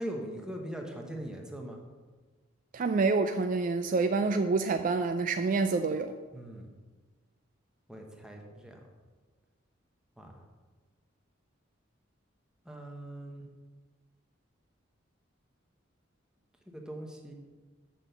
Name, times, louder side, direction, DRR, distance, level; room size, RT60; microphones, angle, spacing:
voice 1, 0.0-1.8 6.3-6.7 7.9-8.8 10.2-10.4 12.7-13.5 16.7-17.3, right 1 dB, 5° right, 1 dB, 1.0 m, -41 dB
voice 2, 2.7-6.1, right 4 dB, 45° right, 8 dB, 0.3 m, -27 dB
6.1 x 6.0 x 6.8 m, 1.3 s
head